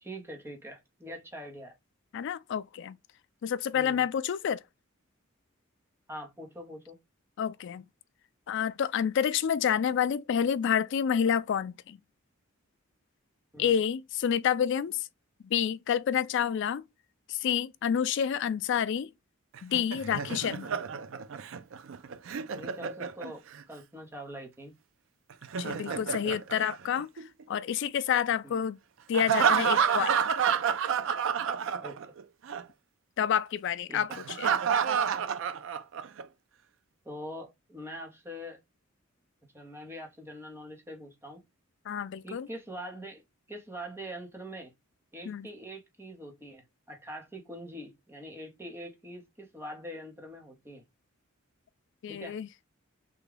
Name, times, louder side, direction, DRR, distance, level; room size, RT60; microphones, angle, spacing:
voice 1, 0.0-1.7 3.7-4.0 6.1-7.0 13.5-13.8 22.5-24.7 28.4-28.6 31.8-32.0 33.9-34.2 37.0-38.6 39.4-41.4 42.2-43.2 43.5-44.7 45.1-50.8 52.1-52.4, equal, 10° right, 0.8 m, -43 dB
voice 2, 2.1-3.0 3.4-4.6 7.4-7.8 8.5-12.0 13.6-15.1 15.4-16.8 17.3-19.1 19.6-20.7 25.6-27.1 27.5-28.8 29.1-30.1 33.2-34.5 41.9-42.5 45.3-45.5 52.0-52.5, left 8 dB, 60° left, 0.3 m, -29 dB
Laughter, 19.6-23.6 25.3-27.4 29.1-32.2 32.5-32.6 34.1-36.2, right 7 dB, 65° right, 0.4 m, -29 dB
3.5 x 2.2 x 3.2 m
head